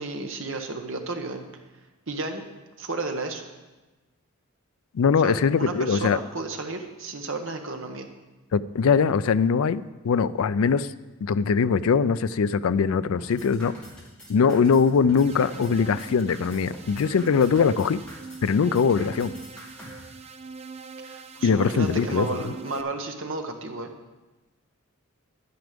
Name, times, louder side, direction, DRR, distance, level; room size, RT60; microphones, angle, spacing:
voice 1, 0.0-1.4 2.1-2.4 2.8-3.5 5.2-8.1 14.5-14.6 21.0-23.9, right 3 dB, 60° right, 4 dB, 1.2 m, -32 dB
voice 2, 4.9-6.2 8.5-10.9 11.2-13.8 14.3-18.0 18.4-19.3 21.4-22.3, left 6 dB, 75° left, 15 dB, 0.4 m, -22 dB
sound 1, 13.1-20.0, equal, 5° left, 2.5 m, -44 dB
sound 2, 15.1-22.8, right 4 dB, 30° right, 0.5 m, -42 dB
10.5 x 9.4 x 5.2 m, 1.1 s
head